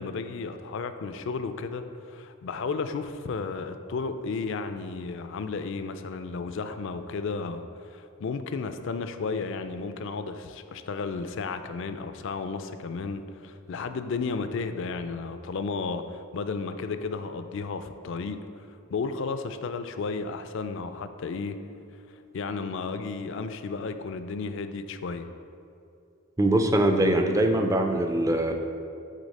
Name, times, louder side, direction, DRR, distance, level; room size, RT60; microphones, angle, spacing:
voice 1, 0.0-21.6 22.3-25.3, left 4 dB, 60° left, 9 dB, 0.4 m, -33 dB
voice 2, 26.4-28.5, right 1 dB, 15° right, 5 dB, 0.4 m, -22 dB
8.2 x 3.9 x 4.1 m, 2.6 s
head